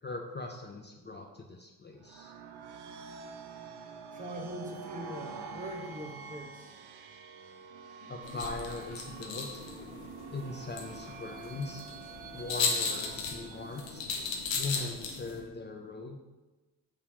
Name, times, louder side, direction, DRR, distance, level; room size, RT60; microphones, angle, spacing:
voice 1, 0.0-2.3 8.0-9.5 10.3-11.9 12.3-14.1 14.5-16.2, left 3 dB, 25° left, 2 dB, 0.7 m, -40 dB
sound 1, 2.0-14.5, right 5 dB, 60° right, 0.7 m, -47 dB
voice 2, 4.1-6.8, equal, 15° right, 2 dB, 1.1 m, -42 dB
sound 2, 8.2-15.4, left 5 dB, 75° left, 1.1 m, -36 dB
5.0 x 3.5 x 5.6 m, 1.1 s
hypercardioid pair, 45°, 45 cm